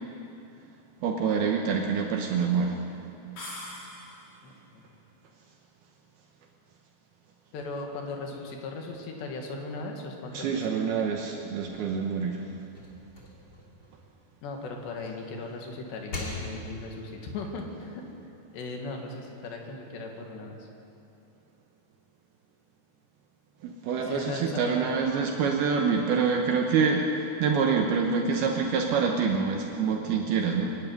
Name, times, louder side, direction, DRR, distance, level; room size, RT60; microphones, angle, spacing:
voice 1, 1.0-2.8 10.3-12.5 23.6-30.8, right 5 dB, 70° right, 1 dB, 2.9 m, -26 dB
sound 1, 3.4-4.4, left 1 dB, 65° left, 6.8 m, -41 dB
voice 2, 4.4-4.8 7.5-11.1 14.4-18.0 18.5-20.7 24.0-24.8, left 3 dB, 85° left, 2 dB, 4.3 m, -38 dB
sound 2, 11.7-14.8 15.2-17.0, left 2 dB, 25° left, 3.0 m, -42 dB
24.0 x 12.0 x 9.5 m, 2.7 s
omnidirectional pair, 4.8 m